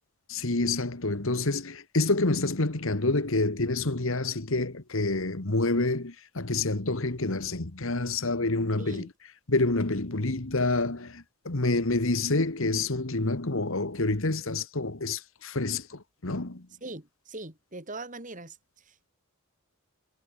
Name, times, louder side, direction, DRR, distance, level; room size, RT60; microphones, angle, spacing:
voice 1, 0.3-9.1 9.5-16.7, left 2 dB, 60° left, 1.6 m, -28 dB
voice 2, 8.8-9.1 16.8-19.1, right 2 dB, 35° right, 4.2 m, -41 dB
head